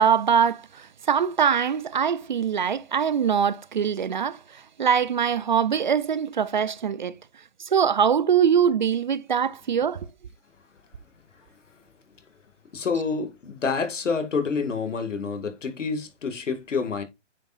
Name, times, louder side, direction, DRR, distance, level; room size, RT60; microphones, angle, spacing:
voice 1, 0.0-7.2 7.6-10.1, right 7 dB, 40° right, 0.4 m, -23 dB
voice 2, 12.7-17.0, left 5 dB, 85° left, 2.3 m, -28 dB
8.9 x 6.9 x 2.5 m
hypercardioid pair, 155°, 36 cm